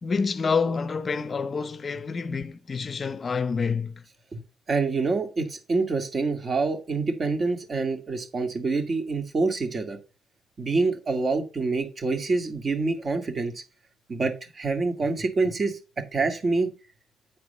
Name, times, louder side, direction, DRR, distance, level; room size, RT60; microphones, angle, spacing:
voice 1, 0.0-4.0, left 5 dB, 40° left, 0.6 m, -28 dB
voice 2, 4.7-10.0 10.6-13.6 14.1-16.7, right 3 dB, 40° right, 2.2 m, -26 dB
9.0 x 4.7 x 5.5 m
cardioid pair, 90°, 0 cm